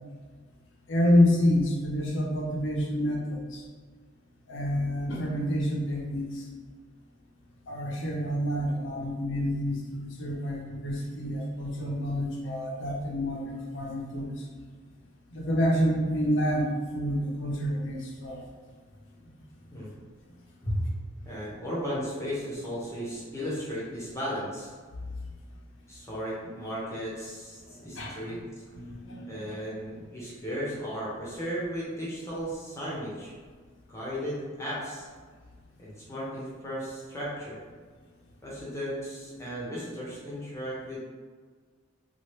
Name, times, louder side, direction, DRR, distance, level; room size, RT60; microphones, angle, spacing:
voice 1, 0.9-3.6 4.5-6.4 7.7-14.3 15.3-18.4 27.8-28.1 28.7-29.5, equal, 60° left, -2 dB, 0.6 m, -28 dB
voice 2, 21.2-24.7 25.9-28.4 29.3-33.3 33.9-35.1 35.8-37.6 38.4-41.0, equal, 15° left, -7 dB, 0.8 m, -35 dB
2.8 x 2.4 x 3.2 m, 1.5 s
head